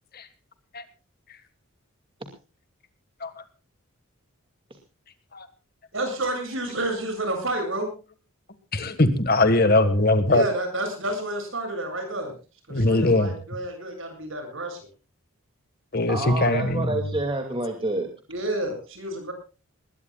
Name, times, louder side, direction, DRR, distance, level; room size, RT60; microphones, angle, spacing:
voice 1, 5.9-7.9 10.3-12.3 12.7-14.8 18.3-19.3, right 1 dB, 65° right, 5 dB, 7.9 m, -30 dB
voice 2, 8.7-10.4 12.7-13.3 15.9-17.0, left 2 dB, 45° left, 10 dB, 1.6 m, -21 dB
voice 3, 16.1-18.1, right 2 dB, 25° right, 3 dB, 2.4 m, -28 dB
20.5 x 20.5 x 2.4 m, 0.34 s
head